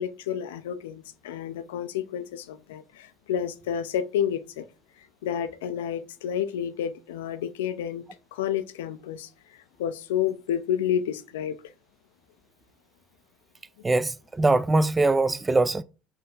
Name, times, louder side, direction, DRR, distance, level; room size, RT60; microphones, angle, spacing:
voice 1, 0.0-4.6 5.2-8.0 8.3-9.3 9.8-11.6, left 9 dB, 80° left, 0.4 m, -30 dB
voice 2, 13.8-15.8, right 2 dB, 20° right, 0.3 m, -22 dB
4.3 x 2.7 x 3.7 m
hypercardioid pair, 65°, 0 cm